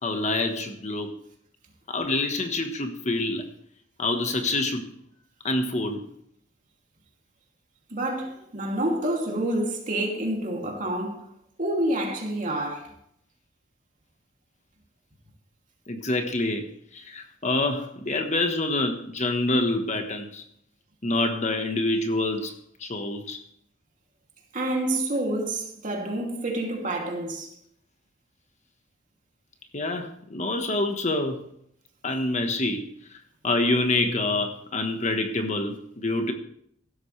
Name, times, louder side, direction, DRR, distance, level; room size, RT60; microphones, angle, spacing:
voice 1, 0.0-1.1 1.9-3.4 4.0-4.9 5.4-6.0 15.9-20.4 21.0-22.5 22.8-23.4 29.7-31.4 32.0-32.8 33.4-36.3, left 2 dB, 40° left, 1.4 m, -26 dB
voice 2, 7.9-11.3 11.6-12.9 24.5-27.5, right 1 dB, 45° right, 2.8 m, -28 dB
16.0 x 12.5 x 3.4 m
head